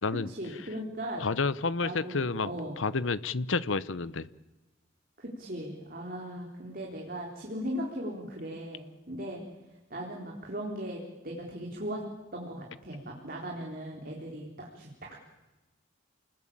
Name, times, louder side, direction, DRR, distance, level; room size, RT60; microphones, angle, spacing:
voice 1, 0.1-1.2 1.8-2.8 5.2-9.4 9.9-12.0 12.3-14.5 14.7-15.2, equal, 45° right, -1 dB, 3.9 m, -38 dB
voice 2, 1.2-2.5 2.8-4.3, left 4 dB, 75° left, 16 dB, 0.9 m, -30 dB
29.0 x 20.0 x 8.8 m, 1.1 s
head